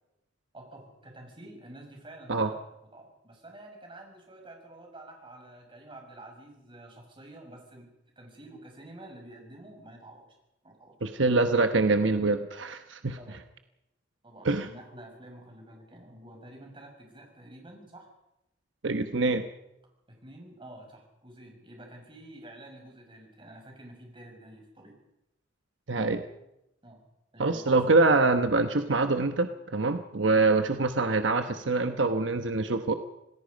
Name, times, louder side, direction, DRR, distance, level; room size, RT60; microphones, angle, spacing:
voice 1, 0.5-2.6 2.9-10.3 10.6-11.0 13.2-13.4 14.2-18.1 20.1-24.9 26.8-27.1 27.3-27.6, right 1 dB, 25° right, 1 dB, 6.3 m, -49 dB
voice 2, 11.0-13.2 14.4-14.7 18.8-19.4 25.9-26.2 27.4-32.9, right 3 dB, 75° right, 8 dB, 1.0 m, -25 dB
27.0 x 19.0 x 5.3 m, 0.87 s
head